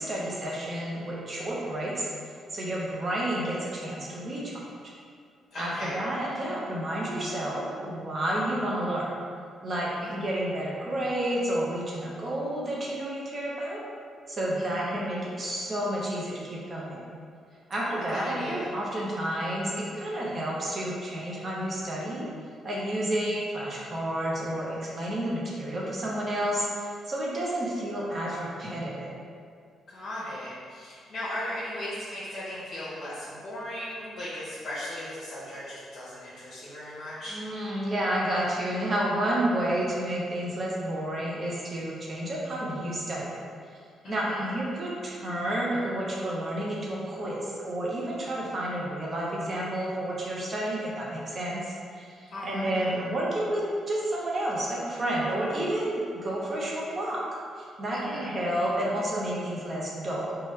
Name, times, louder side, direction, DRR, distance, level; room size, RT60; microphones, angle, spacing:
voice 1, 0.0-2.1 2.5-4.6 5.5-9.1 9.6-13.8 14.3-17.0 17.7-22.3 22.6-29.1 37.3-43.3 44.1-57.2 57.5-60.3, right 1 dB, 40° right, -5 dB, 0.7 m, -30 dB
voice 2, 5.5-6.0 10.0-10.3 14.6-15.0 17.8-18.7 29.9-37.4 44.0-44.6 52.3-53.0 57.9-58.4, left 1 dB, 50° left, -10 dB, 0.8 m, -37 dB
3.0 x 2.2 x 3.1 m, 2.2 s
cardioid pair, 90°, 0 cm